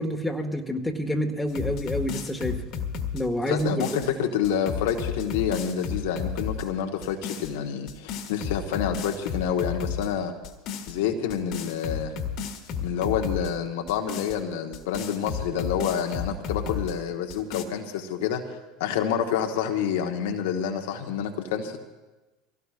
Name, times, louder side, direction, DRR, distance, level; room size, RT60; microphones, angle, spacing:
voice 1, 0.0-2.6 3.1-3.8, equal, 5° left, 3 dB, 1.8 m, -28 dB
sound 1, 1.5-4.1 4.4-6.7 7.0-7.5 7.9-10.1 10.4-10.9 11.3-13.5 13.9-16.9 17.3-17.6, left 7 dB, 55° left, 1.7 m, -33 dB
voice 2, 3.5-10.3 10.9-12.1 12.8-21.8, left 8 dB, 75° left, 3 dB, 1.2 m, -28 dB
24.0 x 17.0 x 2.5 m, 1.1 s
hypercardioid pair, 80°, 0 cm